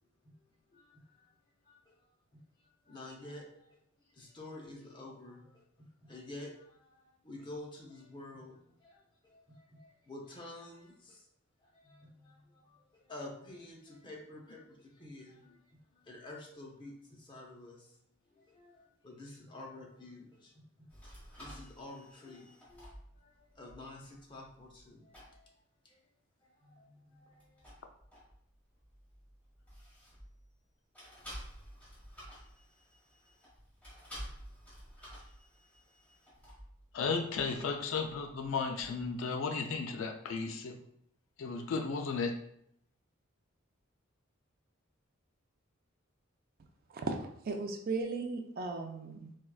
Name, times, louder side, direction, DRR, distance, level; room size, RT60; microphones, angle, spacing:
voice 1, 0.7-1.3 1.6-1.9 2.3-2.4 2.8-11.2 11.6-15.6 15.9-17.9 18.3-20.9 21.4-25.5 25.8-26.0 26.4-27.7, left 2 dB, 25° left, -1 dB, 0.7 m, -50 dB
sound 1, 20.9-24.9 25.1-25.4 27.3-30.6 30.9-39.2, equal, 5° left, 1.4 m, -52 dB
voice 2, 36.9-40.7 41.4-42.3, left 4 dB, 65° left, 4 dB, 0.4 m, -34 dB
voice 3, 46.9-49.4, right 3 dB, 45° right, 4 dB, 0.4 m, -37 dB
4.3 x 2.3 x 2.3 m, 0.71 s
head